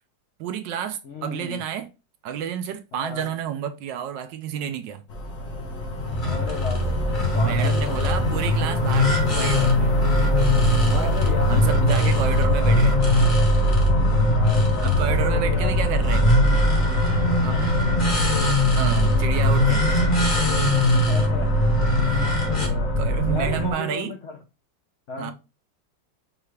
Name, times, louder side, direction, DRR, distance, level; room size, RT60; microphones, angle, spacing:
voice 1, 0.4-1.9 2.2-5.0 7.4-9.9 10.9-11.1 11.5-13.0 14.8-16.3 17.4-17.9 18.8-20.0 22.0-22.3 22.6-24.1 25.2-25.3, right 9 dB, 75° right, 1.2 m, -30 dB
voice 2, 1.0-1.6 2.9-3.3 6.2-8.0 10.9-13.1 14.3-15.7 17.2-17.6 21.1-21.5 22.4-22.9 23.3-24.4 25.1-25.3, left 4 dB, 70° left, 0.6 m, -35 dB
sound 1, 5.1-23.7, equal, 55° left, 1.0 m, -23 dB
sound 2, 6.0-22.7, left 1 dB, 35° left, 0.9 m, -23 dB
5.5 x 2.4 x 3.1 m
omnidirectional pair, 2.1 m